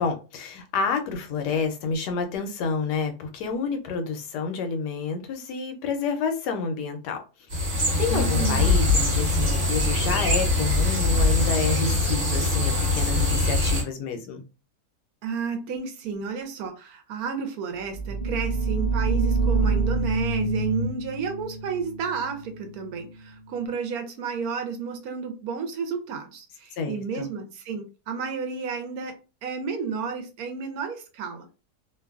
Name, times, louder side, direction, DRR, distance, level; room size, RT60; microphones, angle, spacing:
voice 1, 0.0-7.2 7.6-14.4 26.7-27.3, left 5 dB, 85° left, 6 dB, 1.2 m, -29 dB
sound 1, 7.5-13.8, left 2 dB, 40° right, 0.9 m, -22 dB
voice 2, 8.1-8.7 15.2-31.5, right 5 dB, 70° right, 5 dB, 1.0 m, -32 dB
sound 2, 17.9-23.5, right 3 dB, 50° left, 0.5 m, -27 dB
2.9 x 2.2 x 2.3 m, 0.32 s
omnidirectional pair, 1.8 m